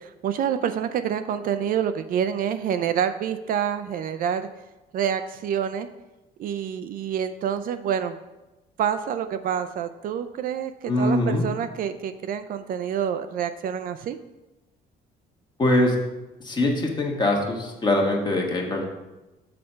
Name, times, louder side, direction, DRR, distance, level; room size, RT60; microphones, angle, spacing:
voice 1, 0.0-4.5 4.9-5.9 6.4-8.2 8.8-10.7 11.0-14.2, right 8 dB, 55° right, 10 dB, 0.4 m, -27 dB
voice 2, 10.8-11.5 15.6-16.0 16.4-18.9, left 1 dB, 25° left, 0 dB, 1.3 m, -22 dB
6.6 x 4.2 x 5.5 m, 1.0 s
cardioid pair, 110°, 17 cm